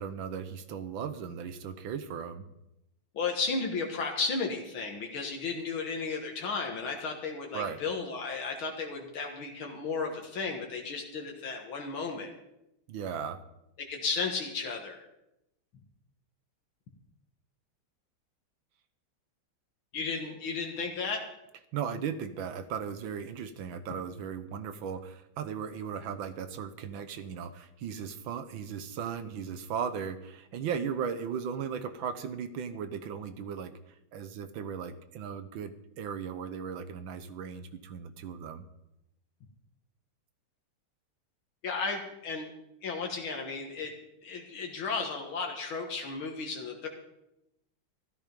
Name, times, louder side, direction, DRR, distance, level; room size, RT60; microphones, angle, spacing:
voice 1, 0.0-2.5 7.5-7.8 12.9-13.4 21.7-38.6, right 7 dB, 70° right, 11 dB, 1.6 m, -37 dB
voice 2, 3.1-12.3 13.8-15.1 19.9-21.2 41.6-42.5 42.8-43.9 44.2-46.9, left 4 dB, 75° left, 1 dB, 2.3 m, -34 dB
14.5 x 13.0 x 5.2 m, 0.87 s
omnidirectional pair, 2.3 m